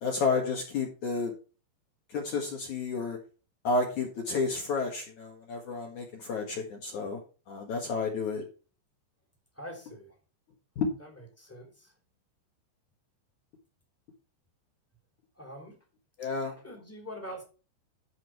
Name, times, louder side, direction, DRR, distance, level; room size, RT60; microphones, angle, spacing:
voice 1, 0.0-1.3 2.1-3.2 3.6-7.2 7.5-8.4 10.8-10.9 16.2-16.5, left 4 dB, 50° left, -1 dB, 2.7 m, -31 dB
voice 2, 9.5-10.2 11.0-11.9 15.4-15.8 16.6-17.4, equal, 5° left, 1 dB, 2.2 m, -44 dB
13.0 x 5.8 x 4.7 m, 0.34 s
omnidirectional pair, 5.2 m